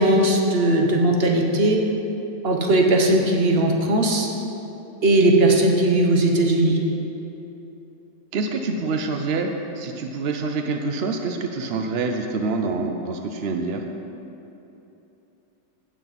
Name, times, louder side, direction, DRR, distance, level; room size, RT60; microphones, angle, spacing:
voice 1, 0.0-1.8 2.4-4.3 5.0-6.8, right 1 dB, 40° right, 1 dB, 1.0 m, -18 dB
voice 2, 8.3-13.8, right 3 dB, 80° right, 4 dB, 0.5 m, -26 dB
16.0 x 6.2 x 4.1 m, 3.0 s
omnidirectional pair, 1.9 m